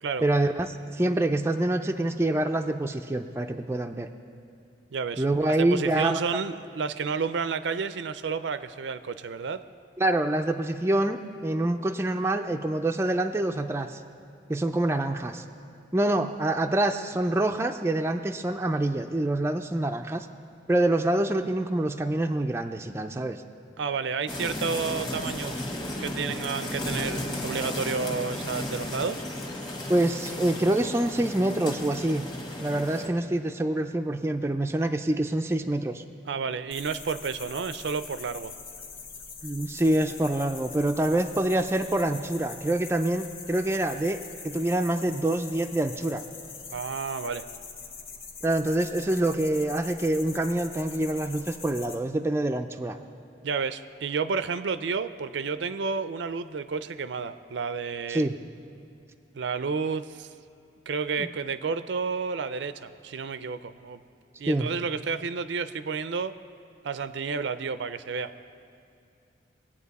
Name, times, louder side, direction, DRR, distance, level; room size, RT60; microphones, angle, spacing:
voice 1, 0.2-4.1 5.2-6.2 10.0-14.0 14.5-15.4 15.9-20.3 20.7-23.4 29.9-32.3 32.6-36.0 39.4-46.2 48.4-53.0 58.1-58.4 61.2-61.3 64.5-64.7, right 1 dB, 15° right, 5 dB, 0.3 m, -26 dB
voice 2, 4.9-5.2 5.6-9.6 23.8-25.6 26.0-29.2 36.3-38.5 46.7-47.5 53.4-58.3 59.3-60.3 60.9-64.0 64.4-66.3 66.8-68.3, right 5 dB, 75° right, 12 dB, 0.5 m, -31 dB
sound 1, 24.3-33.1, left 1 dB, 25° left, 1.4 m, -34 dB
sound 2, 36.7-51.9, left 5 dB, 50° left, 1.1 m, -43 dB
21.5 x 8.7 x 4.1 m, 2.6 s
head